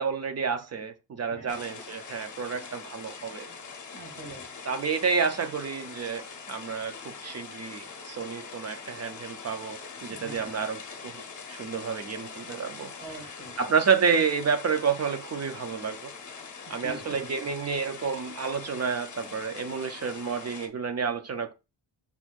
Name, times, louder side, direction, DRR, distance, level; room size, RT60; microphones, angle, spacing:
voice 1, 0.0-3.5 4.7-11.2 11.5-12.9 13.6-16.1 16.7-21.5, right 6 dB, 35° right, 0.4 m, -29 dB
sound 1, 1.5-20.7, left 5 dB, 40° left, 0.8 m, -43 dB
voice 2, 3.9-4.5 10.1-10.5 13.0-13.7 16.7-17.3, right 2 dB, 80° right, 1.9 m, -44 dB
6.1 x 3.5 x 2.4 m
wide cardioid pair, 175°, 48 cm